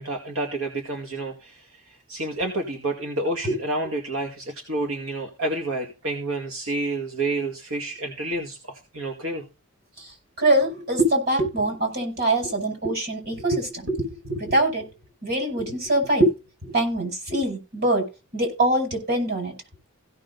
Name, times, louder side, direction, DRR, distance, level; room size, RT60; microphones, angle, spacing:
voice 1, 0.0-9.4, right 2 dB, 75° right, 2 dB, 2.2 m, -29 dB
voice 2, 10.4-14.9 15.2-16.3 16.6-18.0 18.3-19.5, right 1 dB, 45° right, 4 dB, 5.7 m, -23 dB
16.5 x 6.3 x 4.0 m, 0.31 s
head